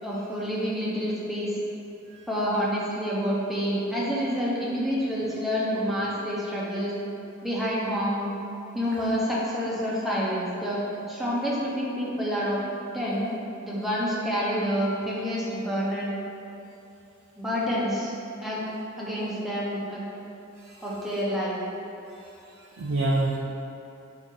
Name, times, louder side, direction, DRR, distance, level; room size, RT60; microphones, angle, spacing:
voice 1, 0.0-1.6 2.3-6.9 7.4-8.3 8.7-12.6 12.9-13.3 13.6-16.1 17.4-18.1 18.4-18.6 19.0-20.0 20.8-21.6, equal, ahead, -7 dB, 0.6 m, -28 dB
voice 2, 22.6-23.4, right 2 dB, 65° right, -4 dB, 0.4 m, -28 dB
4.0 x 2.7 x 3.7 m, 2.8 s
head